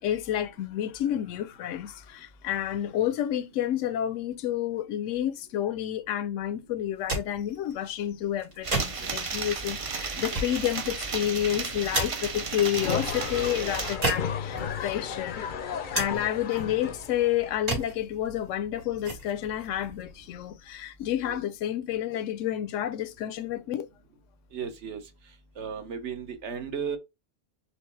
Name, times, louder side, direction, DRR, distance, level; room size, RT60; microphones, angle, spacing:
voice 1, 0.0-15.4 15.9-23.9, left 11 dB, 80° left, 0.9 m, -30 dB
sound 1, 6.8-20.8, right 2 dB, 90° right, 2.4 m, -37 dB
sound 2, 8.6-14.0, right 5 dB, 45° right, 0.4 m, -34 dB
sound 3, 12.7-17.6, left 7 dB, 55° left, 0.6 m, -34 dB
voice 2, 24.5-25.0 25.6-27.0, right 6 dB, 65° right, 1.1 m, -35 dB
4.6 x 3.2 x 3.2 m
omnidirectional pair, 1.3 m